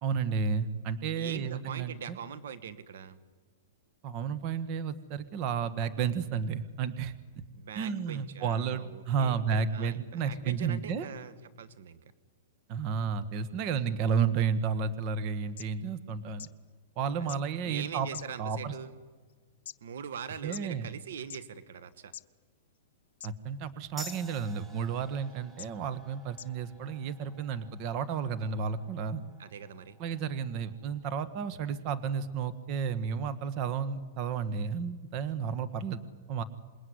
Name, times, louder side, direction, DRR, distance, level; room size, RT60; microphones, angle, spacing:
voice 1, 0.0-2.2 4.0-7.1 7.7-11.1 12.7-16.5 17.0-18.1 18.4-18.7 20.4-20.9 23.2-29.2 30.0-36.4, right 6 dB, 35° right, 12 dB, 1.5 m, -32 dB
voice 2, 1.2-3.2 7.5-12.0 17.2-18.9 19.8-22.1 29.4-30.0, right 8 dB, 75° right, 13 dB, 1.5 m, -42 dB
sound 1, 15.3-15.4 15.6-15.7 16.4-16.5 17.3-17.4 18.1-18.6 19.3-19.8 20.5-20.6 21.2-21.4 22.1-22.2 23.2-23.5 24.0-24.2 24.9-25.0 25.6-25.7 26.4-26.5 27.3-27.4, left 11 dB, 70° left, 0.8 m, -43 dB
sound 2, 24.0-31.1, right 1 dB, 5° right, 1.5 m, -51 dB
26.5 x 21.0 x 9.7 m, 1.4 s
hypercardioid pair, 145°, 0 cm